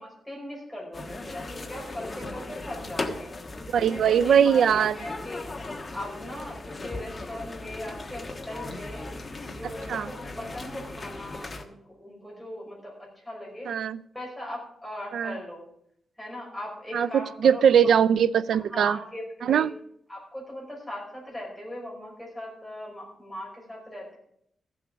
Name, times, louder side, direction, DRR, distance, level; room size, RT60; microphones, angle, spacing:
voice 1, 0.0-3.3 3.8-5.5 5.9-9.1 9.5-12.9 13.2-13.7 14.1-15.6 16.2-17.6 18.5-19.7 20.1-24.2, left 1 dB, ahead, 5.5 m, -39 dB
sound 1, 0.9-11.6, left 2 dB, 25° left, 1.3 m, -37 dB
voice 2, 3.7-5.0 9.9-10.1 13.7-14.0 15.1-15.4 16.9-19.0 19.4-19.7, right 8 dB, 80° right, 0.4 m, -21 dB
14.5 x 7.7 x 6.2 m
wide cardioid pair, 145°, 0 cm